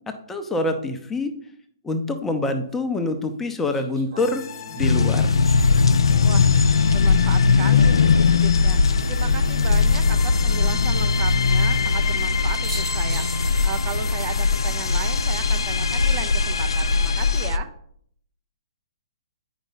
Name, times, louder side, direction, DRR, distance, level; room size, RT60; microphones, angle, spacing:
voice 1, 0.1-1.3 1.8-4.4 4.7-5.3, left 2 dB, 10° left, 6 dB, 0.7 m, -25 dB
sound 1, 2.2-2.3 3.7-6.9 8.7-9.4 12.2-12.3 12.6-14.2 14.5-14.6 16.9-17.4, right 3 dB, 70° right, 2.5 m, -42 dB
sound 2, 4.2-17.5, left 4 dB, 50° left, 1.0 m, -30 dB
sound 3, 4.8-17.6, left 4 dB, 80° left, 0.5 m, -20 dB
voice 2, 6.9-8.8 9.1-17.7, right 8 dB, 35° right, 8 dB, 0.7 m, -35 dB
8.9 x 5.2 x 4.0 m, 0.65 s
figure-of-eight pair, 125°, 3 cm